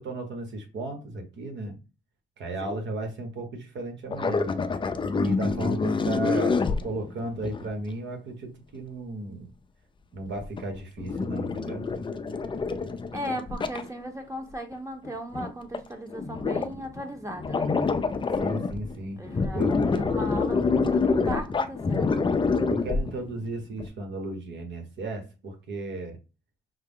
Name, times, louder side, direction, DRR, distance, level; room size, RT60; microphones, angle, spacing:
voice 1, 0.0-1.8 2.4-4.5 5.1-9.5 10.1-11.8 18.4-19.2 19.5-19.7 22.7-26.2, right 2 dB, 65° right, 1.4 m, -34 dB
sound 1, 4.1-7.7 10.3-13.9 14.7-14.8 15.0-15.5 15.7-15.8 16.1-17.0 17.3-19.0 19.2-23.4 23.8-23.9, left 4 dB, 25° left, 0.4 m, -27 dB
voice 2, 13.1-17.7 19.2-22.2, equal, 15° right, 1.1 m, -37 dB
5.6 x 2.1 x 3.6 m
cardioid pair, 90°, 20 cm